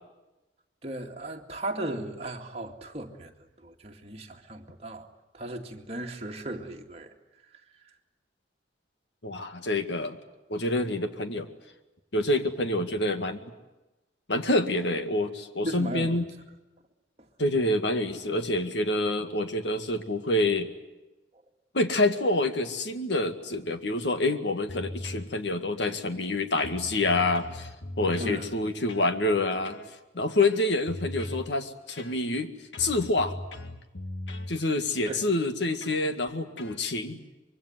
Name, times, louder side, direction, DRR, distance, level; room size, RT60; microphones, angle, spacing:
voice 1, 0.8-3.3 3.6-5.1 5.3-7.1 15.7-16.2 17.2-17.3 28.2-28.5 35.1-35.3, right 1 dB, 35° right, 2 dB, 2.2 m, -36 dB
voice 2, 9.2-10.2 10.5-11.5 12.1-13.5 14.3-16.2 17.4-20.7 21.7-27.7 28.0-29.8 30.1-32.5 32.8-33.3 34.5-37.2, left 2 dB, 70° left, 8 dB, 2.0 m, -27 dB
sound 1, 24.7-25.3 25.8-26.3 26.6-28.4 28.9-29.1 29.6-29.9 30.4-31.5 32.0-32.4 32.7-34.5 35.0-35.3 35.8-36.0 36.6-36.8, left 1 dB, 85° left, 1.9 m, -39 dB
25.0 x 23.0 x 9.4 m, 1.0 s
head